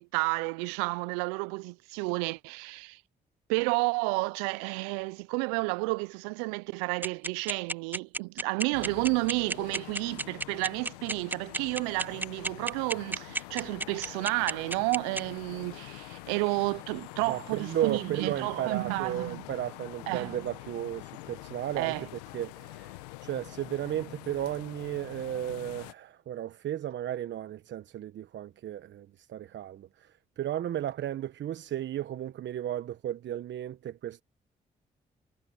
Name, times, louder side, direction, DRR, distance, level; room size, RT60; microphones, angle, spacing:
voice 1, 0.0-3.0 3.5-19.4 20.1-20.4 21.8-22.1, right 29 dB, 85° right, 0.5 m, -31 dB
sound 1, 7.0-15.2, right 2 dB, 10° right, 0.4 m, -30 dB
sound 2, 8.7-25.9, left 21 dB, 90° left, 1.3 m, -45 dB
voice 2, 17.3-22.1 22.3-23.0 23.2-34.2, right 11 dB, 65° right, 1.2 m, -34 dB
hypercardioid pair, 40°, 20 cm